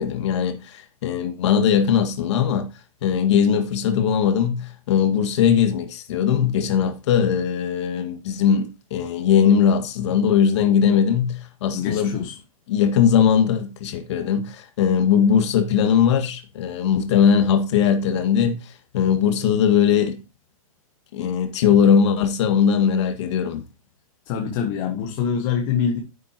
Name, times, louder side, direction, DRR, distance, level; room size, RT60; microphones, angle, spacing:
voice 1, 0.0-2.7 3.0-12.1 12.7-18.6 18.9-20.2 21.1-23.6, left 8 dB, 50° left, 1.8 m, -20 dB
voice 2, 11.7-12.4 24.2-26.0, left 7 dB, 35° left, 1.5 m, -25 dB
10.5 x 8.2 x 2.9 m
hypercardioid pair, 150°, 18 cm